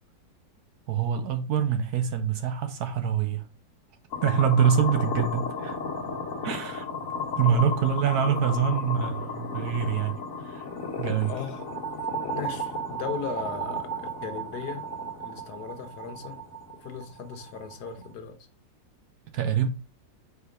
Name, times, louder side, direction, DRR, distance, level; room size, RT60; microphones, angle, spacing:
voice 1, 0.9-3.5 4.2-5.8 6.4-6.9 7.4-10.7 11.0-11.3 19.3-19.7, right 8 dB, 65° right, 1.1 m, -25 dB
sound 1, 4.1-18.1, left 1 dB, 50° left, 1.5 m, -34 dB
voice 2, 11.2-11.7 12.3-14.9 15.2-16.4 16.8-18.4, left 6 dB, 65° left, 1.4 m, -37 dB
4.9 x 4.5 x 5.0 m
omnidirectional pair, 2.0 m